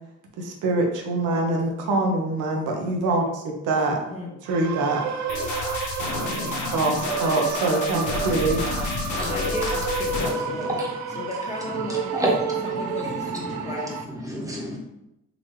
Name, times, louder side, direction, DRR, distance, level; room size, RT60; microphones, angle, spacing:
voice 1, 0.4-4.0 4.5-5.0 6.7-8.6, right 2 dB, 85° right, 1 dB, 0.8 m, -24 dB
voice 2, 3.9-4.3 7.1-7.5 8.5-8.9 9.2-10.7 11.1-12.3 12.6-13.9, left 2 dB, 25° left, -2 dB, 1.0 m, -35 dB
sound 1, 4.5-14.0, right 5 dB, 70° right, 0.5 m, -30 dB
sound 2, 5.3-10.3, left 3 dB, 80° left, 0.9 m, -30 dB
voice 3, 10.4-10.9 11.8-13.7 14.1-14.8, right 1 dB, 10° right, -3 dB, 1.2 m, -30 dB
3.9 x 2.9 x 3.2 m, 0.88 s
cardioid pair, 90°, 30 cm